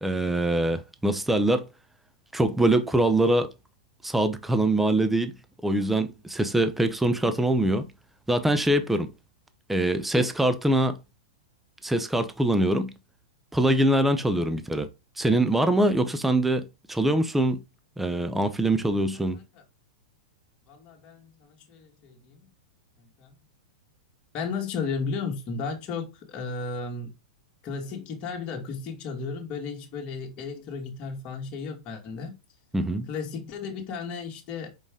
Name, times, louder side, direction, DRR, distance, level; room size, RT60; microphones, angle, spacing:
voice 1, 0.0-1.7 2.3-3.5 4.0-5.3 5.6-7.9 8.3-9.1 9.7-11.0 11.8-12.9 13.5-14.9 15.2-17.6 18.0-19.4 32.7-33.1, right 1 dB, 5° right, 0.7 m, -23 dB
voice 2, 20.7-22.5 23.0-23.3 24.3-27.1 27.6-32.3 33.1-34.7, left 5 dB, 35° left, 2.1 m, -34 dB
5.2 x 4.9 x 3.7 m
hypercardioid pair, 120°, 4 cm